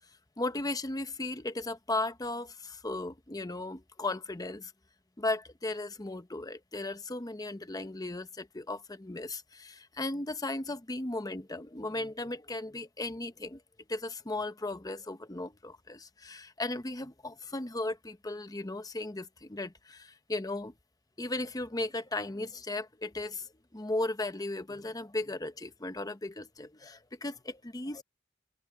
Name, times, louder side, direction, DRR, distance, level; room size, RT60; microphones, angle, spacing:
voice 1, 0.4-4.7 5.2-13.6 13.9-20.7 21.2-28.0, left 2 dB, 20° left, 0.9 m, -36 dB
head